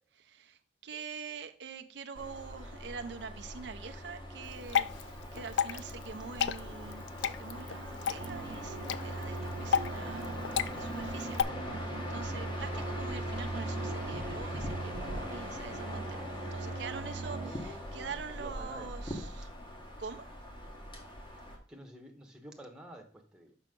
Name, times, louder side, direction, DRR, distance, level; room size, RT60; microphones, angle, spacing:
voice 1, 0.1-11.4 11.7-16.0 16.4-19.5 20.0-20.3, right 5 dB, 80° right, 6 dB, 0.6 m, -45 dB
sound 1, 2.1-21.6, left 1 dB, 30° left, 1.4 m, -41 dB
Water / Drip, 4.4-11.4, left 8 dB, 85° left, 0.3 m, -34 dB
sound 2, 8.2-17.5, right 3 dB, 35° right, 0.3 m, -41 dB
voice 2, 17.4-19.1 21.7-23.6, equal, 5° right, 2 dB, 1.1 m, -50 dB
6.0 x 5.7 x 3.7 m, 0.42 s
head